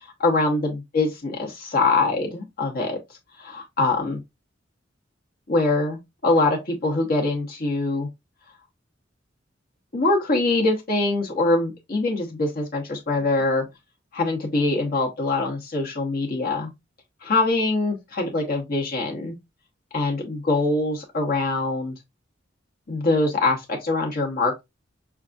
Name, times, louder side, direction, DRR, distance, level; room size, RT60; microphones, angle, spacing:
voice 1, 0.2-3.0 3.4-4.2 5.5-8.1 9.9-13.6 14.1-16.7 17.2-19.3 19.9-21.9 22.9-24.6, left 2 dB, 50° left, 1.0 m, -23 dB
5.5 x 2.3 x 2.5 m
head